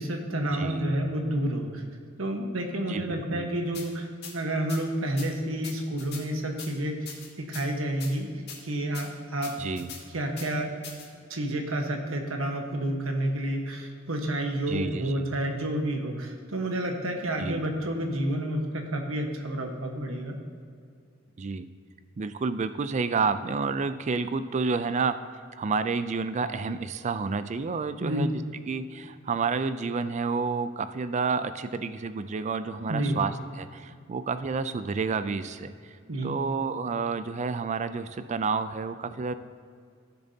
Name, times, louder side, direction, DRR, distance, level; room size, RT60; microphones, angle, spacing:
voice 1, 0.0-1.8 2.2-7.1 7.4-9.5 10.1-10.7 11.3-20.4 28.0-28.3 32.8-33.2 36.1-36.4, right 1 dB, 85° right, 3 dB, 1.2 m, -30 dB
voice 2, 0.5-0.8 2.9-3.0 3.3-3.5 9.6-9.9 14.7-15.3 17.4-17.6 21.4-21.7 22.2-25.2 25.6-28.4 28.7-36.0 36.2-39.3, right 4 dB, 35° right, 12 dB, 0.4 m, -30 dB
sound 1, 3.7-3.9 4.2-4.3 4.7-4.8 5.2-5.3 5.6-6.2 6.6-6.7 7.1-7.6 8.0-8.1 8.5-8.6 8.9-9.1 9.4-10.0 10.4-10.5 10.8-11.1, left 6 dB, 55° left, 1.9 m, -41 dB
15.5 x 6.8 x 2.8 m, 2.2 s
head